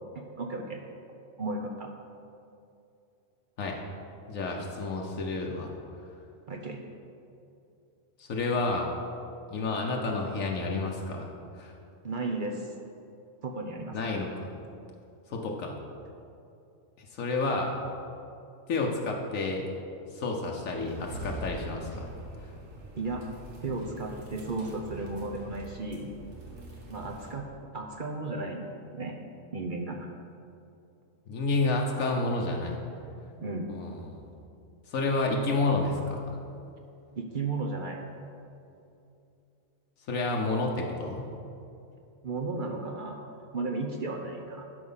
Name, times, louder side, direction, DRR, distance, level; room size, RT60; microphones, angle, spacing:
voice 1, 0.1-0.8 1.4-1.9 6.5-6.9 12.0-12.7 13.4-14.0 23.0-23.2 23.6-26.1 26.9-27.5 27.7-28.6 28.9-29.2 29.5-30.1 33.4-33.7 37.2-38.0 42.2-44.7, right 3 dB, 45° right, 2 dB, 0.8 m, -34 dB
voice 2, 4.3-5.7 8.2-8.9 9.5-11.3 11.6-11.7 13.9-14.5 15.3-15.8 17.0-17.7 18.7-19.7 20.1-22.1 31.3-32.8 33.7-34.2 34.9-36.2 40.1-41.3, left 3 dB, 80° left, 0 dB, 1.3 m, -30 dB
sound 1, 20.8-27.3, right 1 dB, 75° right, 1.8 m, -43 dB
12.0 x 4.9 x 5.6 m, 2.7 s
omnidirectional pair, 1.4 m